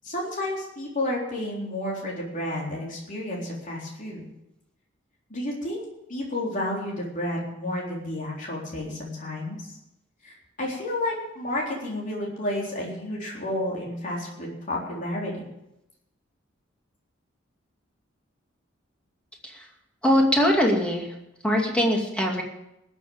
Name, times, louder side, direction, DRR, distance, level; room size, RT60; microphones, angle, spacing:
voice 1, 0.0-4.2 5.3-5.8 6.1-9.6 10.2-15.4, left 1 dB, 45° left, -3 dB, 3.8 m, -31 dB
voice 2, 20.0-21.1 21.4-22.4, equal, 5° left, 0 dB, 2.5 m, -22 dB
20.0 x 7.3 x 7.2 m, 0.86 s
head